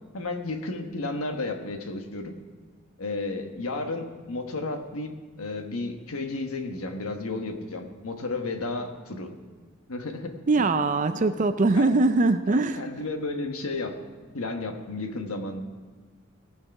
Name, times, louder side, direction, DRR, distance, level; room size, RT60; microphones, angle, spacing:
voice 1, 0.1-2.3 3.0-9.3 9.9-10.7 11.7-11.9 12.5-13.9 14.3-15.6, left 2 dB, 80° left, 5 dB, 1.2 m, -33 dB
voice 2, 10.5-12.8, right 3 dB, 35° right, 10 dB, 0.4 m, -22 dB
18.0 x 6.4 x 5.9 m, 1.4 s
head